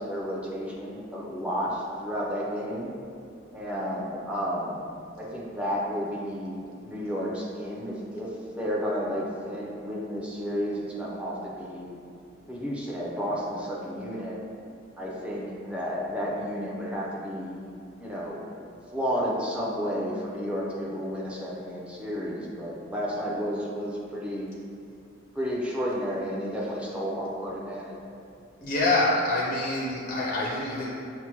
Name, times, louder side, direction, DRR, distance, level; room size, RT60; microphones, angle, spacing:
voice 1, 0.0-2.9 3.5-4.8 5.2-11.9 12.5-14.4 15.0-17.7 18.0-18.4 18.9-24.5 25.3-28.0, equal, 5° right, -5 dB, 0.6 m, -32 dB
voice 2, 28.6-30.9, left 2 dB, 50° left, -4 dB, 0.5 m, -26 dB
6.0 x 2.1 x 2.9 m, 2.3 s
head